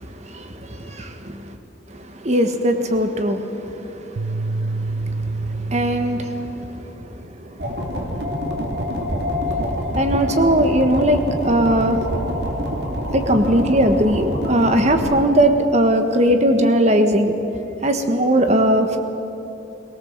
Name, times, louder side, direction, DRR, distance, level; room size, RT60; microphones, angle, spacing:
voice 1, 0.0-1.6 1.9-8.1 8.6-8.7 9.9-12.0 13.1-17.3 17.8-19.0, right 1 dB, 35° right, 6 dB, 1.4 m, -20 dB
sound 1, 4.2-6.7, right 3 dB, 85° right, 0.5 m, -27 dB
sound 2, 7.6-15.2, equal, 55° right, 3.0 m, -26 dB
21.0 x 18.5 x 7.4 m, 3.0 s
head